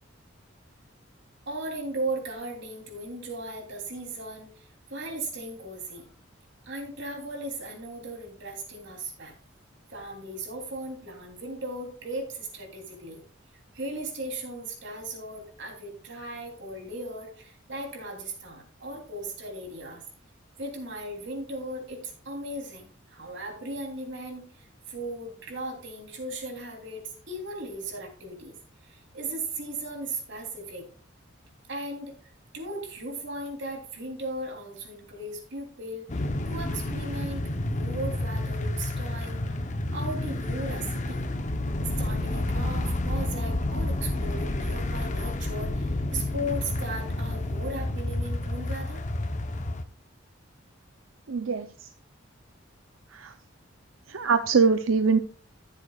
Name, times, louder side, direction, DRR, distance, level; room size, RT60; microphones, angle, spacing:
voice 1, 1.5-4.5 4.9-6.1 6.6-9.3 9.9-13.2 13.7-20.0 20.6-28.5 28.8-30.8 31.7-32.1 32.5-39.5 39.9-41.3 41.8-49.0, right 1 dB, 65° right, 1 dB, 3.3 m, -37 dB
sound 1, 36.1-49.8, left 1 dB, 40° left, 0.9 m, -30 dB
voice 2, 51.3-51.9 53.1-53.3 54.1-55.2, right 5 dB, 90° right, 9 dB, 0.6 m, -23 dB
14.0 x 7.9 x 2.4 m, 0.43 s
head